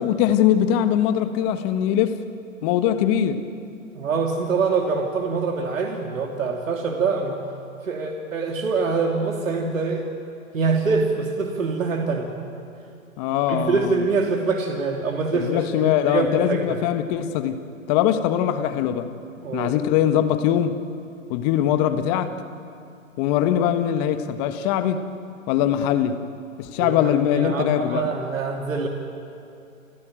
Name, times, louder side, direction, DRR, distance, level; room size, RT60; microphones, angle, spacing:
voice 1, 0.0-2.2 2.6-3.4 13.2-14.0 15.3-19.1 19.5-20.8 21.3-22.3 23.2-25.1 25.5-26.2 26.6-28.1, left 10 dB, 30° left, 10 dB, 1.4 m, -22 dB
voice 2, 3.9-7.4 7.8-10.0 10.5-12.3 13.5-16.8 19.4-19.7 26.8-28.9, right 4 dB, 75° right, 2 dB, 2.8 m, -24 dB
29.5 x 15.0 x 9.1 m, 2.6 s
hypercardioid pair, 130°, 40 cm